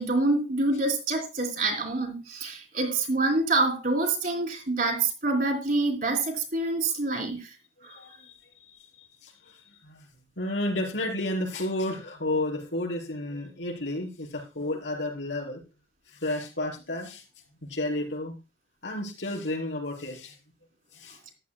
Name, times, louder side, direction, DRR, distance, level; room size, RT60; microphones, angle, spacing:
voice 1, 0.0-7.5, right 2 dB, 50° right, 3.2 m, -26 dB
voice 2, 7.8-10.1 10.4-15.6 16.1-17.2 17.6-18.3 18.8-20.4 20.9-21.2, left 1 dB, 85° left, 5.1 m, -32 dB
14.0 x 11.5 x 2.3 m
head